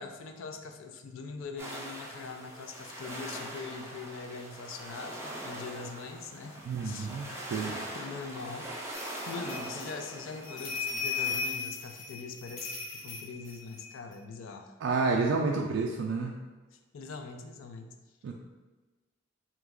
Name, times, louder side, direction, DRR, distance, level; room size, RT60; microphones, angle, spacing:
voice 1, 0.0-7.1 7.7-8.7 9.3-14.8 16.9-17.9, left 4 dB, 85° left, 6 dB, 0.4 m, -42 dB
sound 1, 1.6-11.4, right 1 dB, 15° right, 0.5 m, -42 dB
voice 2, 6.6-7.8 14.8-16.3 18.2-18.3, right 4 dB, 75° right, 0 dB, 0.3 m, -29 dB
sound 2, 8.9-14.1, left 5 dB, 40° left, 0.8 m, -37 dB
3.0 x 2.3 x 3.5 m, 1.2 s
head